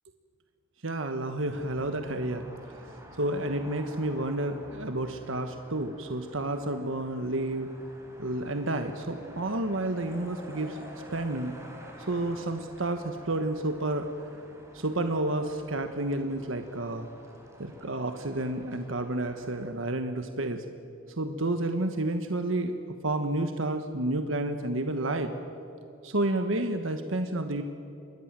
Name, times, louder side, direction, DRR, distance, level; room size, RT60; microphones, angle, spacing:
voice 1, 0.8-2.8 3.2-7.7 8.2-10.8 11.1-11.5 12.1-14.1 14.7-17.1 17.6-20.6 21.1-22.7 23.0-25.3 26.0-27.6, right 2 dB, 80° right, 7 dB, 1.3 m, -30 dB
sound 1, 1.5-19.7, equal, 15° right, 4.2 m, -51 dB
sound 2, 9.9-13.1, equal, 30° left, 7.5 m, -49 dB
27.5 x 22.0 x 7.6 m, 2.8 s
head